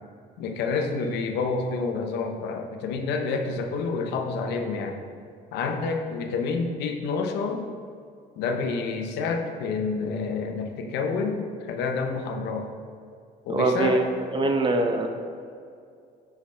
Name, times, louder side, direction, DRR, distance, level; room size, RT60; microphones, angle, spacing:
voice 1, 0.4-5.0 5.5-7.7 8.4-12.7 13.4-14.0, left 4 dB, 85° left, 5 dB, 0.8 m, -28 dB
voice 2, 13.5-15.1, right 2 dB, 30° right, 4 dB, 0.8 m, -23 dB
9.4 x 6.0 x 3.3 m, 2.3 s
cardioid pair, 110°, 17 cm